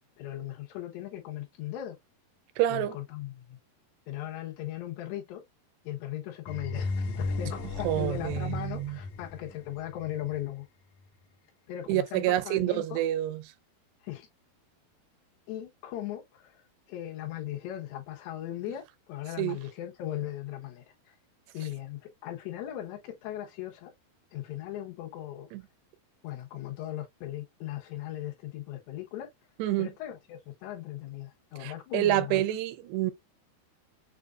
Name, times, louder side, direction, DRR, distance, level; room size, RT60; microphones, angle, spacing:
voice 1, 0.2-2.0 2.7-3.6 4.1-5.4 5.8-10.6 11.7-13.0 14.0-14.3 15.5-16.6 16.9-18.8 19.1-21.1 21.5-23.9 24.3-25.5 26.2-29.3 29.8-32.4, left 13 dB, 85° left, 3.4 m, -38 dB
voice 2, 2.6-3.0 7.8-9.0 11.9-13.4 19.4-19.6 25.5-25.6 29.6-29.9 31.6-33.1, right 14 dB, 90° right, 2.7 m, -28 dB
sound 1, 6.5-10.4, left 3 dB, 70° left, 1.9 m, -35 dB
7.5 x 2.5 x 2.3 m
omnidirectional pair, 4.7 m